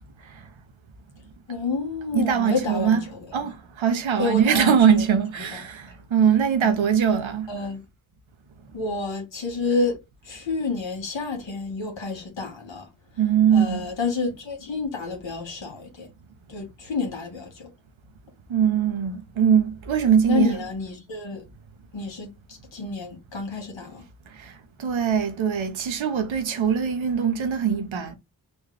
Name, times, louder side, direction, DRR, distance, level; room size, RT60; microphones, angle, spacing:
voice 1, 1.5-3.2 4.2-5.2 5.5-5.6 6.6-6.8 7.5-7.8 8.7-10.0 10.2-12.9 13.5-16.1 16.5-17.7 20.3-21.4 21.9-24.0, left 4 dB, 70° left, 1.6 m, -29 dB
voice 2, 2.1-3.0 3.3-7.5 13.2-13.9 18.5-20.6 24.8-28.1, right 8 dB, 90° right, 0.9 m, -21 dB
4.2 x 2.3 x 3.2 m
cardioid pair, 45°, 45 cm